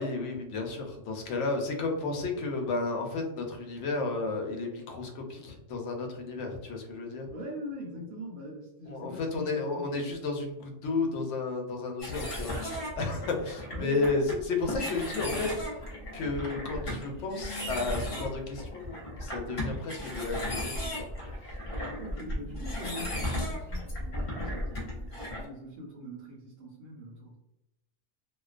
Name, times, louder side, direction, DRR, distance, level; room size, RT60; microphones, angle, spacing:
voice 1, 0.0-7.3 8.9-12.6 13.0-15.5 16.1-18.9 19.2-21.1 21.4-21.5, left 3 dB, 70° left, 2 dB, 0.9 m, -32 dB
voice 2, 7.3-9.9 13.7-14.1 22.0-27.4, equal, 80° right, -5 dB, 1.0 m, -42 dB
sound 1, 12.0-25.5, left 1 dB, 45° left, 0.4 m, -36 dB
2.5 x 2.2 x 2.4 m, 0.90 s
omnidirectional pair, 1.3 m